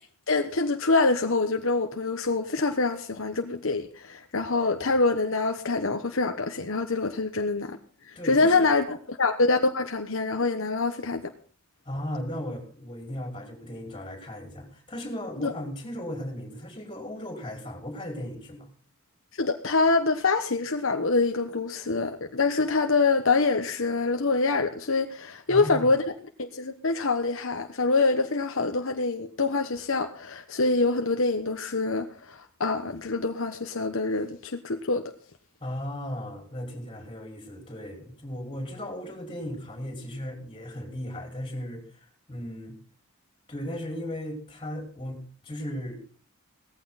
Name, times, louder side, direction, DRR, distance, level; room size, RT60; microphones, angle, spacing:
voice 1, 0.3-7.8 8.0-11.2 15.4-15.5 19.4-26.0 26.4-35.0, left 3 dB, 60° left, 5 dB, 1.2 m, -25 dB
voice 2, 8.2-8.7 11.9-18.7 25.5-25.9 35.6-42.0 42.3-42.7 43.5-46.0, equal, 20° left, 2 dB, 5.4 m, -36 dB
18.0 x 15.0 x 4.2 m, 0.41 s
head